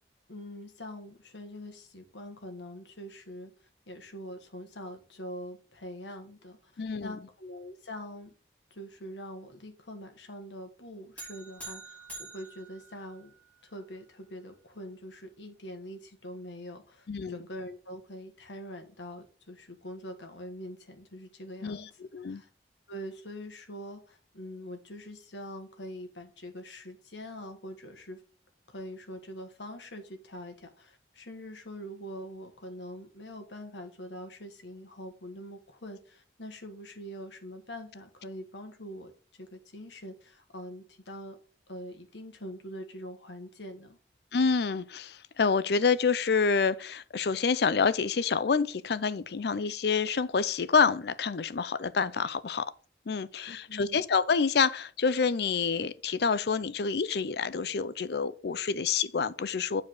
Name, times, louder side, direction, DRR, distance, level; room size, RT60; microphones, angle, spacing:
voice 1, 0.3-8.3 8.7-13.3 13.6-22.5 22.9-28.2 28.7-41.4 41.7-44.0 53.4-54.0, equal, 90° left, 1.6 m, -44 dB
voice 2, 6.8-7.1 17.1-17.4 21.6-21.8 22.1-22.4 44.3-52.7 53.1-59.8, left 5 dB, 65° left, 0.5 m, -27 dB
sound 1, 11.2-13.6, right 2 dB, 10° left, 2.8 m, -46 dB
8.3 x 4.8 x 4.8 m
head